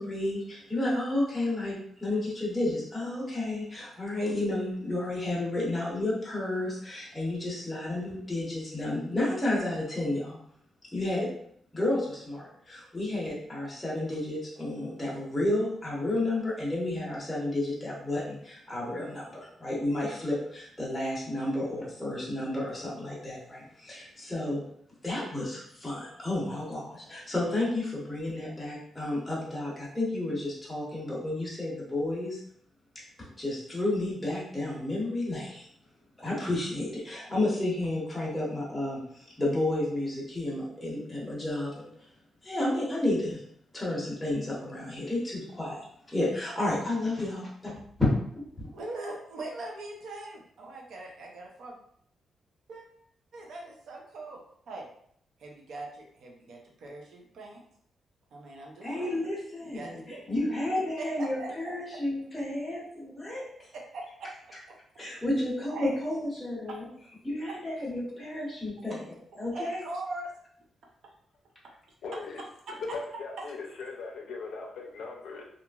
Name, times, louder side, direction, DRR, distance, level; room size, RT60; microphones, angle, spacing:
voice 1, 0.0-10.4 10.9-11.3 11.7-24.6 25.0-32.4 33.2-35.7 36.2-41.9 42.4-43.4 43.7-47.8 48.6-48.7 58.8-63.7 65.0-66.9 67.2-69.8, left 1 dB, 5° left, -6 dB, 0.7 m, -31 dB
voice 2, 48.7-51.8 52.7-52.9 53.3-54.4 54.7-54.9 55.4-57.6 58.3-59.2 59.6-60.2 61.0-61.5 63.7-64.3 65.7-65.9 66.7-66.8 67.7-67.8 69.5-70.3, right 2 dB, 70° right, -1 dB, 0.6 m, -41 dB
voice 3, 72.0-72.4 72.9-75.5, left 4 dB, 80° left, 0 dB, 0.4 m, -39 dB
2.9 x 2.4 x 2.3 m, 0.67 s
wide cardioid pair, 165°, 0 cm